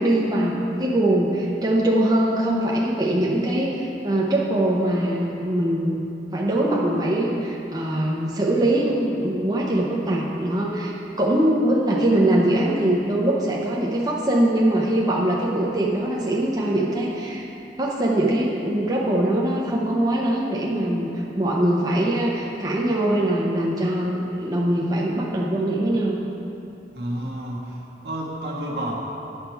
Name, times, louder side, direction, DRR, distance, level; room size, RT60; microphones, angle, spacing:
voice 1, 0.0-6.0 6.3-17.4 17.8-26.2, right 1 dB, 20° right, -4 dB, 0.7 m, -22 dB
voice 2, 26.9-29.0, right 1 dB, 70° right, -4 dB, 1.5 m, -30 dB
9.9 x 6.6 x 4.6 m, 2.8 s
head